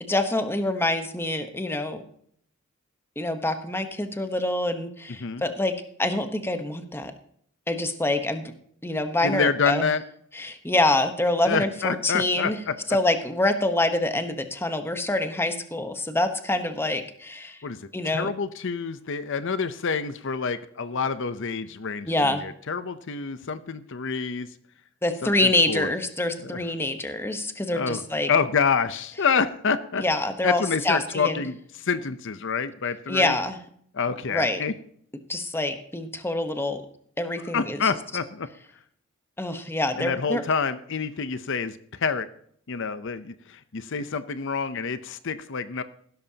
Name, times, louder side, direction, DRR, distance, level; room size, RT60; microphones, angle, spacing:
voice 1, 0.0-2.0 3.2-7.1 7.7-8.5 8.8-9.9 10.3-12.6 12.9-17.6 17.9-18.3 22.1-22.4 25.0-28.3 30.0-31.4 33.1-33.6 34.3-34.6 35.3-36.8 37.2-37.9 39.4-40.4, left 2 dB, 10° left, 7 dB, 1.1 m, -26 dB
voice 2, 9.2-10.0 11.5-12.7 17.6-24.5 25.2-25.9 26.4-26.6 27.7-28.0 28.3-30.0 30.4-33.4 33.9-34.7 37.5-38.5 40.0-42.3 42.7-45.8, left 5 dB, 65° left, 12 dB, 0.7 m, -27 dB
16.0 x 12.5 x 2.9 m, 0.63 s
head